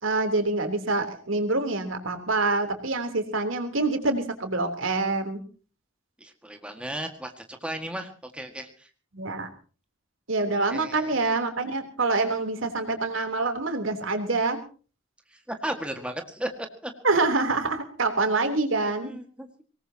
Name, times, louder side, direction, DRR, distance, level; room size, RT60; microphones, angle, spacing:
voice 1, 0.0-5.4 9.1-9.5 10.3-14.6 17.0-19.1, right 3 dB, 85° right, 6 dB, 3.5 m, -26 dB
voice 2, 6.2-8.9 10.7-11.2 15.3-16.5 16.8-16.9 19.0-19.6, right 1 dB, 5° right, 4 dB, 1.8 m, -35 dB
24.5 x 19.0 x 2.9 m, 0.38 s
head